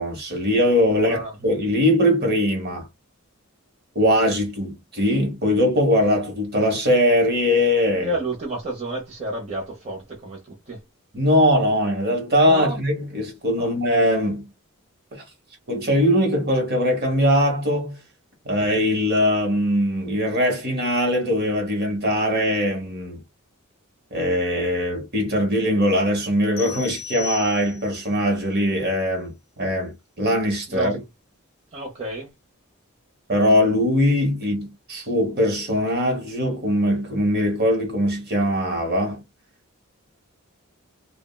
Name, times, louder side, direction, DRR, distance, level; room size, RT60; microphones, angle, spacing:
voice 1, 0.0-2.9 3.9-8.2 11.1-14.4 15.1-15.2 15.7-18.0 18.4-23.2 24.1-29.3 29.6-30.9 33.3-39.2, equal, 50° right, 1.1 m, -21 dB
voice 2, 1.0-1.3 8.0-10.8 12.5-12.8 13.6-13.7 30.7-30.9 31.7-32.3, right 1 dB, 30° right, 0.8 m, -30 dB
sound 1, 26.6-28.1, left 6 dB, 30° left, 0.7 m, -35 dB
3.5 x 2.1 x 2.2 m
head